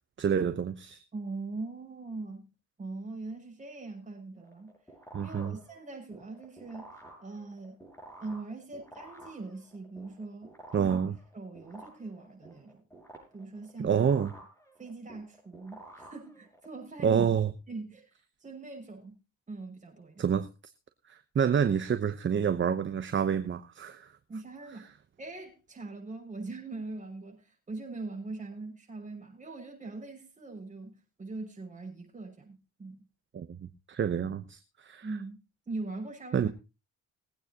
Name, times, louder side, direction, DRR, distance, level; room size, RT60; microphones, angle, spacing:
voice 1, 0.2-1.0 5.1-5.5 10.7-11.2 13.8-14.3 17.0-17.5 20.2-20.5 21.1-24.1 33.3-35.1 36.3-36.5, right 7 dB, 40° right, 1.0 m, -28 dB
voice 2, 1.1-2.5 2.8-4.7 5.2-6.9 7.2-7.8 8.2-11.0 11.3-12.8 13.3-14.0 14.8-17.3 17.7-18.1 18.4-19.2 19.5-20.3 24.3-33.0 35.0-35.4 35.7-36.5, right 3 dB, 25° right, 6.2 m, -41 dB
sound 1, 4.4-16.8, right 1 dB, 10° left, 6.5 m, -52 dB
21.0 x 9.1 x 2.9 m
cardioid pair, 90°, 30 cm